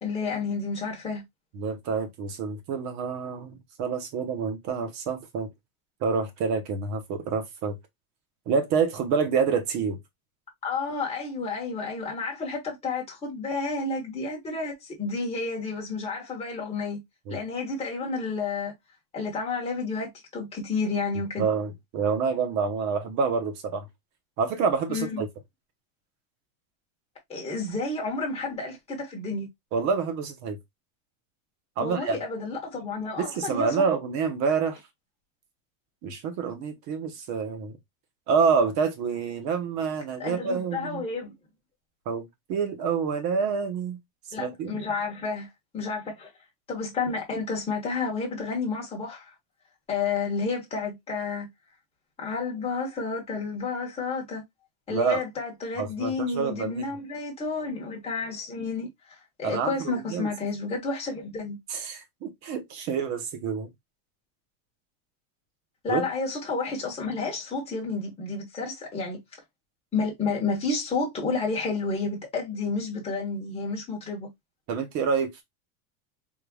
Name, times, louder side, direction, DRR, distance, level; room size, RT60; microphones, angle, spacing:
voice 1, 0.0-1.2 10.6-17.0 17.3-18.7 19.1-21.5 24.9-25.2 27.3-29.5 31.8-33.9 40.2-41.3 44.3-45.5 45.7-46.3 46.7-49.3 49.9-51.5 52.2-54.4 54.9-61.6 65.8-69.2 69.9-74.3, left 4 dB, 15° left, 1.2 m, -31 dB
voice 2, 1.6-5.5 6.0-7.8 8.5-10.0 17.3-17.4 21.4-23.9 24.4-25.3 29.7-30.6 31.8-32.2 33.2-34.8 36.0-37.8 38.3-41.0 42.1-44.0 44.4-44.8 54.9-55.2 55.8-56.9 59.4-60.3 61.7-63.7 65.9-66.0 74.7-75.4, right 5 dB, 35° right, 0.9 m, -27 dB
3.7 x 3.2 x 2.3 m
supercardioid pair, 160°, 46 cm